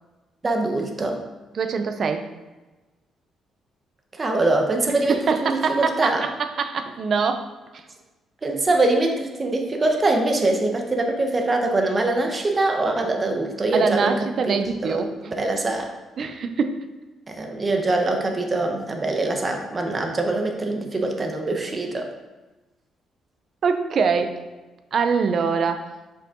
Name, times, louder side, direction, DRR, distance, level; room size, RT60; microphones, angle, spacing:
voice 1, 0.4-1.2 4.2-6.2 8.4-14.1 14.4-14.5 14.8-15.9 17.3-22.1, right 2 dB, 30° right, 3 dB, 1.2 m, -23 dB
voice 2, 1.5-2.3 4.9-7.5 7.7-7.8 13.7-15.1 16.2-16.8 17.4-17.5 23.6-24.4 24.9-25.9, right 5 dB, 55° right, 8 dB, 0.7 m, -24 dB
6.1 x 5.6 x 3.8 m, 1.2 s
cardioid pair, 90°, 0 cm